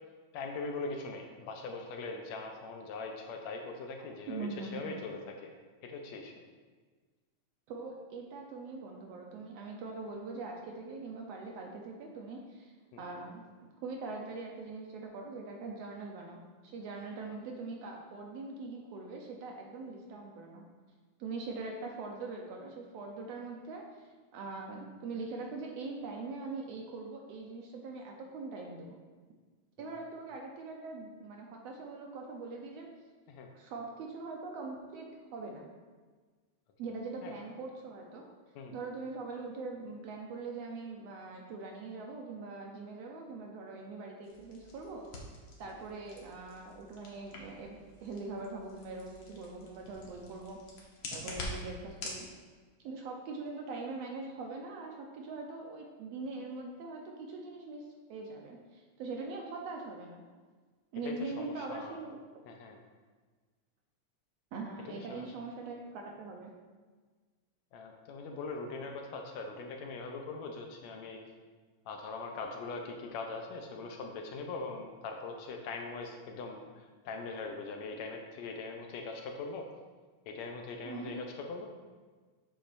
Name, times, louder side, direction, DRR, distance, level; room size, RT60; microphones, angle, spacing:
voice 1, 0.3-5.5 5.8-6.3 12.9-13.0 29.8-29.9 33.3-33.5 37.2-37.3 38.6-38.8 45.7-45.8 61.0-62.0 62.5-62.8 64.9-65.3 67.7-71.2 71.9-79.7 80.3-81.7, left 3 dB, 75° left, 3 dB, 1.9 m, -41 dB
voice 2, 4.3-4.8 7.7-12.7 13.0-20.7 21.2-29.0 29.8-32.9 33.5-35.6 36.8-38.2 38.7-45.0 45.6-52.3 52.8-60.2 60.9-62.2 64.5-66.5 80.8-81.1, right 3 dB, 75° right, 1 dB, 1.6 m, -42 dB
sound 1, 44.2-52.2, left 2 dB, 55° left, 1.5 m, -46 dB
8.8 x 7.2 x 2.6 m, 1.4 s
omnidirectional pair, 3.4 m